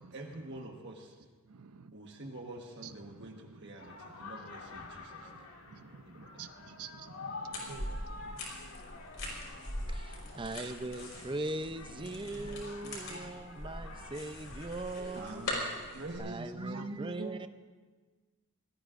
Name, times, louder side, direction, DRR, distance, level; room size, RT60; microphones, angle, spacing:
voice 1, 0.1-1.1 1.9-3.3 3.6-5.2 6.0-6.3 12.0-13.3 15.1-17.4, right 2 dB, 55° right, 0 dB, 1.4 m, -45 dB
sound 1, 3.8-14.7, left 3 dB, 80° left, 2.0 m, -48 dB
voice 2, 6.4-7.4 7.7-8.0 16.7-16.8, right 7 dB, 80° right, 10 dB, 0.7 m, -47 dB
sound 2, 7.5-16.2, left 1 dB, 55° left, 5.0 m, -42 dB
voice 3, 9.9-17.5, right 2 dB, 20° right, 9 dB, 0.6 m, -40 dB
25.5 x 18.5 x 2.6 m, 1.4 s
head